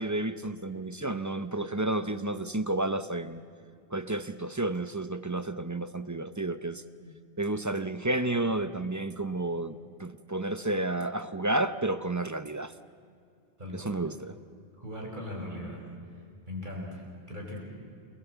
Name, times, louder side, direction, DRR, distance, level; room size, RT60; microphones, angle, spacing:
voice 1, 0.0-3.4 3.9-6.8 7.4-12.7 13.7-14.3, right 2 dB, 20° right, 12 dB, 0.6 m, -31 dB
voice 2, 13.6-14.1 14.8-15.8 16.5-17.6, left 1 dB, 45° right, 0 dB, 5.8 m, -39 dB
29.0 x 20.0 x 8.1 m, 2.4 s
omnidirectional pair, 1.1 m